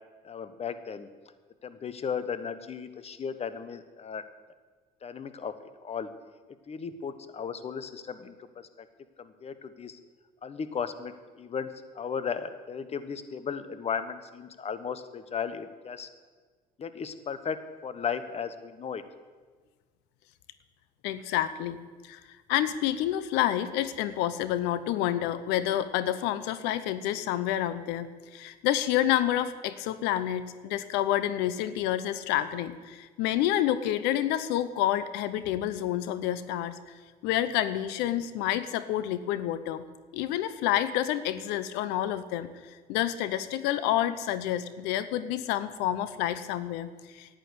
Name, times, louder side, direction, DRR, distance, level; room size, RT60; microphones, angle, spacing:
voice 1, 0.2-1.1 1.6-4.2 5.0-5.5 5.8-6.1 6.7-8.9 9.2-10.0 10.4-11.7 11.9-16.1 16.8-17.6 17.8-19.0, left 6 dB, 35° left, 12 dB, 1.2 m, -35 dB
voice 2, 21.0-21.8 22.0-22.2 22.5-36.8 37.2-39.8 40.1-42.5 42.9-47.4, left 12 dB, 85° left, 14 dB, 0.8 m, -28 dB
11.5 x 9.1 x 9.8 m, 1.5 s
supercardioid pair, 90°, 17 cm